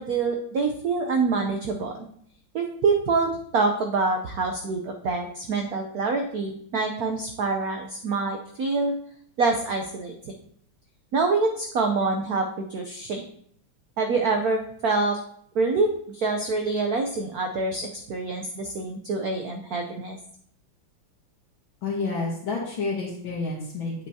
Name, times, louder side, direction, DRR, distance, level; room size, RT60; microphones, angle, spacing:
voice 1, 0.0-2.1 2.5-8.9 9.4-10.3 11.1-13.3 14.0-15.2 15.5-20.2, right 3 dB, 70° right, 3 dB, 0.8 m, -26 dB
voice 2, 21.8-23.9, left 3 dB, 70° left, -5 dB, 2.0 m, -29 dB
8.6 x 7.9 x 2.7 m, 0.65 s
omnidirectional pair, 2.4 m